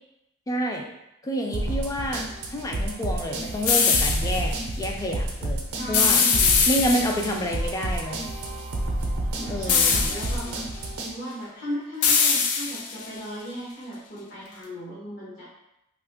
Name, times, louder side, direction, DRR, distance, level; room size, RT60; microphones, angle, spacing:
voice 1, 0.5-0.9 1.2-2.3 2.5-6.2 6.7-8.2 9.5-10.1, equal, 15° left, 1 dB, 0.3 m, -28 dB
sound 1, 1.5-11.1, right 1 dB, 85° right, 0.5 m, -30 dB
sound 2, 3.6-4.4 5.9-7.4 9.7-10.5 12.0-13.1, left 5 dB, 80° left, 0.4 m, -22 dB
voice 2, 5.8-6.7 9.4-10.6 10.9-15.5, equal, 45° left, -8 dB, 0.8 m, -36 dB
2.7 x 2.4 x 3.5 m, 0.86 s
head